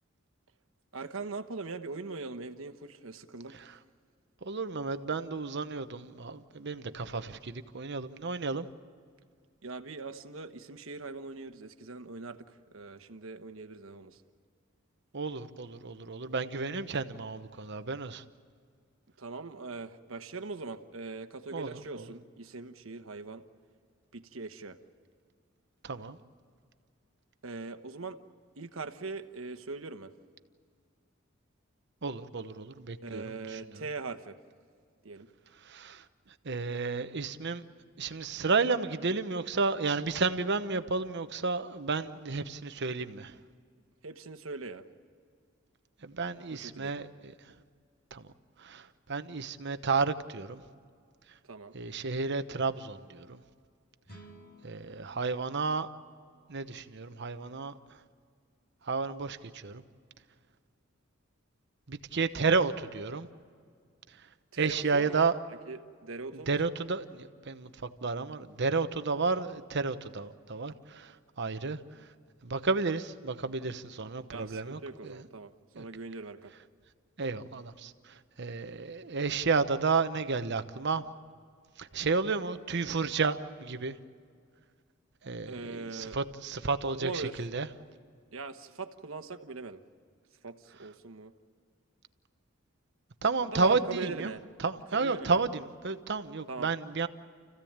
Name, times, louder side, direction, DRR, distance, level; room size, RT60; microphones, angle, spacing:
voice 1, 0.9-3.6 9.6-14.2 19.2-23.4 24.1-24.8 27.4-28.2 28.6-30.1 33.0-34.4 35.0-35.3 44.0-44.8 46.5-47.1 51.4-51.7 62.3-62.5 64.5-65.2 65.7-66.6 74.3-76.5 85.5-86.2 86.9-87.5 88.3-89.8 90.4-91.3 93.5-94.4 94.9-95.4 96.5-96.7, right 3 dB, 85° right, 9 dB, 1.2 m, -41 dB
voice 2, 4.4-8.7 15.1-18.2 21.5-21.7 25.8-26.2 32.0-33.6 35.7-36.0 36.4-37.6 38.0-43.4 46.0-47.1 48.1-48.2 48.6-50.6 51.7-53.4 54.6-55.9 56.5-57.7 58.9-59.8 61.9-63.3 64.6-65.4 66.5-71.1 71.4-71.8 72.4-75.2 75.7-75.8 77.2-77.9 78.4-81.0 81.8-84.0 85.2-87.7 93.2-94.3 94.6-97.1, right 4 dB, 60° right, 10 dB, 1.0 m, -31 dB
sound 1, 54.1-57.4, right 1 dB, 50° left, 3.6 m, -57 dB
29.5 x 15.5 x 8.8 m, 2.1 s
head